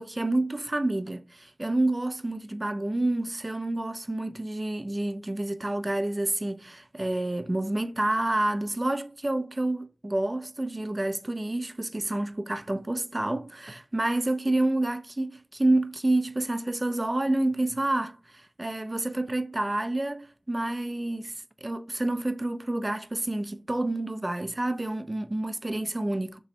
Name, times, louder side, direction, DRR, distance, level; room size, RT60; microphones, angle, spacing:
voice 1, 0.0-21.4 21.6-26.4, right 2 dB, 30° right, 0.4 m, -28 dB
3.0 x 2.6 x 4.1 m
wide cardioid pair, 50°, 0 cm